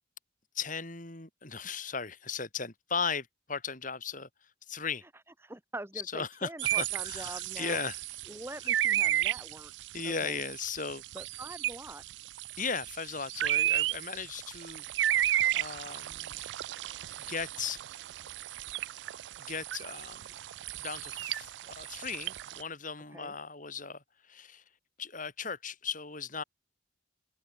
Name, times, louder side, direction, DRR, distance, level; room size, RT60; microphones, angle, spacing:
voice 1, 0.5-5.0 6.1-6.5 6.8-8.0 9.9-11.0 12.6-14.8 15.5-16.4 17.3-17.8 19.4-20.3 20.8-24.6 25.0-26.4, left 5 dB, 40° left, 3.4 m, -37 dB
voice 2, 5.4-7.8 8.3-10.4 11.1-12.0 23.1-23.3, right 1 dB, 10° right, 1.4 m, -44 dB
sound 1, 6.6-22.6, right 13 dB, 60° right, 0.3 m, -33 dB
head